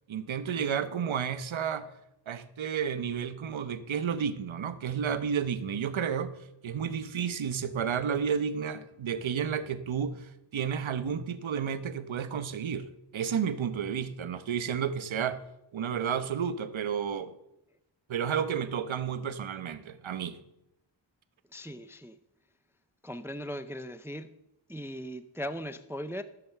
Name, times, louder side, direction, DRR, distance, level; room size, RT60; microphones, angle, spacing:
voice 1, 0.1-1.9 2.3-6.3 6.6-15.4 15.7-17.3 18.1-20.4, right 7 dB, 75° right, 0.9 m, -31 dB
voice 2, 21.5-22.2 23.0-24.3 24.7-26.2, equal, 5° right, 0.4 m, -38 dB
14.5 x 7.0 x 6.7 m
wide cardioid pair, 120°, 47 cm